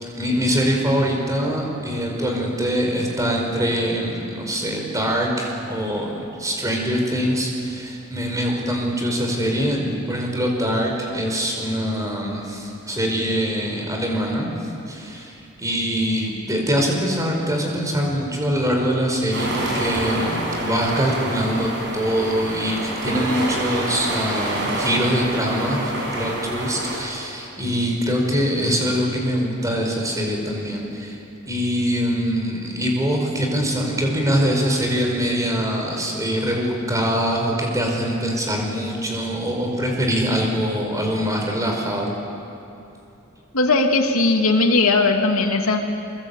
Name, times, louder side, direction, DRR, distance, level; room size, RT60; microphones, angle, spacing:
voice 1, 0.0-14.5 14.9-31.2 31.4-42.2, equal, 15° right, 0 dB, 4.9 m, -23 dB
sound 1, 19.3-27.0, right 1 dB, 60° right, 7.2 m, -27 dB
voice 2, 43.5-45.8, left 3 dB, 90° left, 2 dB, 2.7 m, -18 dB
26.0 x 24.5 x 8.4 m, 2.9 s
head